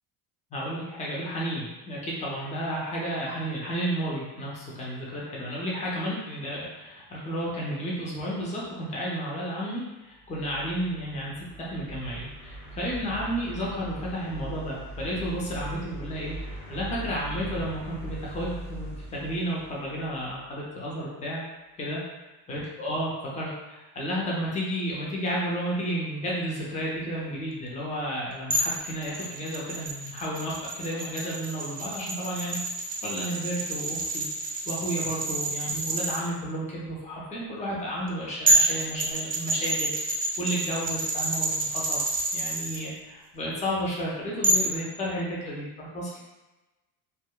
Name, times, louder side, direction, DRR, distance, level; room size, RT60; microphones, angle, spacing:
voice 1, 0.5-21.4 21.8-22.0 22.5-32.6 33.0-34.3 34.7-39.9 40.4-42.0 42.3-46.2, equal, 15° left, -5 dB, 0.6 m, -32 dB
sound 1, 10.2-20.4, right 1 dB, 85° left, 1.0 m, -40 dB
sound 2, 28.5-36.2 38.1-38.2 38.5-42.8 44.4-44.7, right 2 dB, 20° right, 0.4 m, -28 dB
2.7 x 2.2 x 2.2 m, 1.1 s
supercardioid pair, 90°, 45 cm